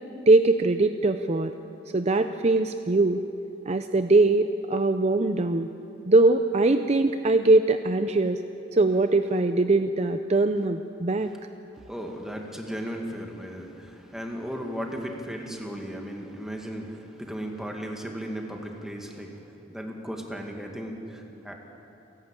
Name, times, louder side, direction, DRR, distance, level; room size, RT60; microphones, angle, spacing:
voice 1, 0.3-1.5 1.9-3.2 3.7-5.7 6.0-8.4 8.7-11.3, right 2 dB, 35° right, 8 dB, 0.6 m, -21 dB
voice 2, 11.8-21.5, equal, 5° right, 1 dB, 2.1 m, -36 dB
29.5 x 11.5 x 9.0 m, 2.8 s
head